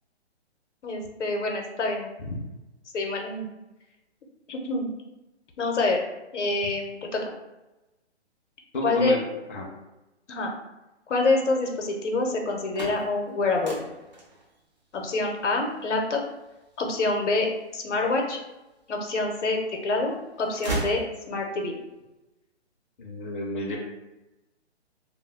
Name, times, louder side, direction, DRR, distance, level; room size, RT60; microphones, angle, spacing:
voice 1, 0.8-2.1 2.9-3.5 4.5-4.9 5.6-6.0 6.3-7.2 8.8-9.2 10.3-10.5 11.1-13.8 14.9-16.2 16.8-17.5 17.7-18.4 18.9-21.0 21.3-21.7, left 3 dB, 85° left, 2 dB, 0.7 m, -26 dB
voice 2, 8.7-9.7 23.0-23.8, left 2 dB, 50° left, -2 dB, 0.5 m, -31 dB
sound 1, 12.4-18.4 19.0-19.8 20.1-21.7, right 2 dB, 40° right, 0.5 m, -37 dB
2.4 x 2.2 x 3.4 m, 1.0 s
hypercardioid pair, 175°, 34 cm